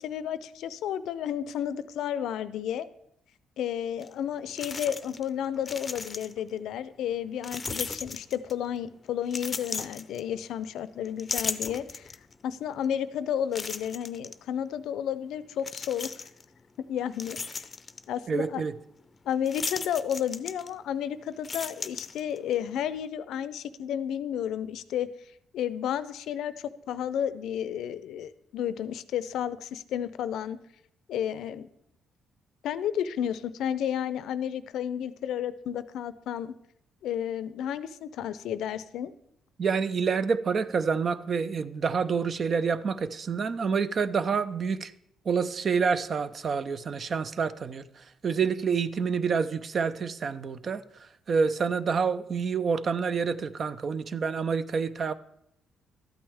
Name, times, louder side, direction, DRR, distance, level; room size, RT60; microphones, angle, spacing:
voice 1, 0.0-2.9 3.6-12.1 12.4-16.2 16.9-17.6 18.1-18.6 19.3-25.1 25.5-30.6 31.1-31.7 32.6-36.5 37.0-39.1, left 9 dB, 80° left, 0.5 m, -32 dB
sound 1, 4.0-4.1 4.6-5.3 5.6-6.5 7.4-8.7 9.3-10.6 11.0-12.3 12.8-12.9 13.5-14.4 15.6-16.4 16.9-18.0 19.4-21.0 21.3-22.6, left 4 dB, 30° left, 0.5 m, -36 dB
voice 2, 18.3-18.7 39.6-44.9 45.3-55.1, right 5 dB, 45° right, 0.5 m, -28 dB
12.5 x 8.7 x 3.5 m
cardioid pair, 90°, 0 cm